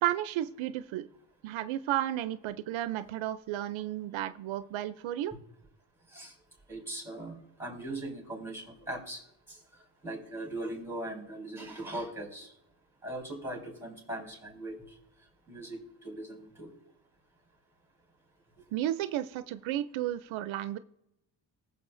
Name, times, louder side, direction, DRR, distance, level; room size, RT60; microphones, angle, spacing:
voice 1, 0.0-1.1 1.4-5.3 18.7-20.8, right 13 dB, 80° right, 12 dB, 0.6 m, -33 dB
voice 2, 6.7-9.2 9.5-9.6 10.0-12.5 13.0-14.8 15.5-16.7, right 1 dB, 5° right, 2 dB, 4.0 m, -40 dB
19.5 x 6.9 x 2.6 m, 0.83 s
cardioid pair, 115°, 46 cm